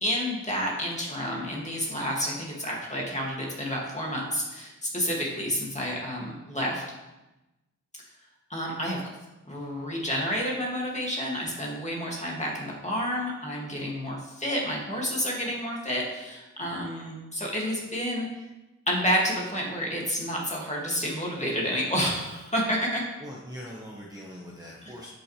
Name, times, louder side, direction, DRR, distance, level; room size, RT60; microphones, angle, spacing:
voice 1, 0.0-6.8 8.5-9.0 9.4-18.3 18.9-23.0 24.8-24.9, equal, 20° left, -3 dB, 2.2 m, -30 dB
voice 2, 23.2-25.1, equal, 10° right, -4 dB, 1.2 m, -41 dB
11.0 x 6.0 x 3.3 m, 1.0 s
wide cardioid pair, 75°, 32 cm